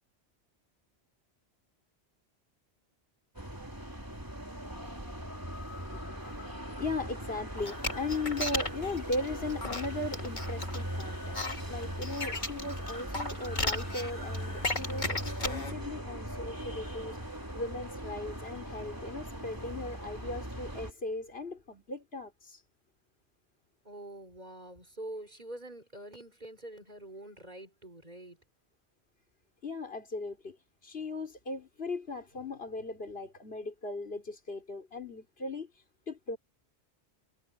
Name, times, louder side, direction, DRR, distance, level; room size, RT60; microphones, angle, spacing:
sound 1, 3.3-20.9, equal, 20° right, 3.3 m, -40 dB
voice 1, 5.7-22.6 29.6-30.6 30.8-35.7 36.1-36.4, left 2 dB, 65° left, 4.4 m, -38 dB
sound 2, 7.6-15.7, left 2 dB, 45° left, 2.8 m, -36 dB
voice 2, 23.8-28.4, right 1 dB, 40° right, 4.9 m, -45 dB
omnidirectional pair, 1.1 m